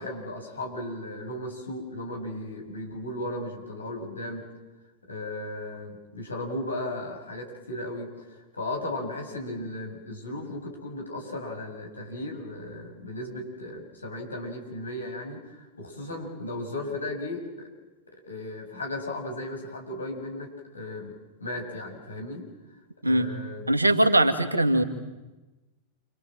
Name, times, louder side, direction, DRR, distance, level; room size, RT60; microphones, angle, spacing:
voice 1, 0.0-4.5 5.1-8.3 8.5-17.5 18.2-21.1 21.4-22.4 23.0-23.7, left 1 dB, 75° left, 1 dB, 6.8 m, -35 dB
voice 2, 23.0-23.3 23.7-24.8, right 1 dB, 80° right, 7 dB, 2.2 m, -21 dB
28.5 x 26.0 x 7.7 m, 1.1 s
figure-of-eight pair, 90°, 0 cm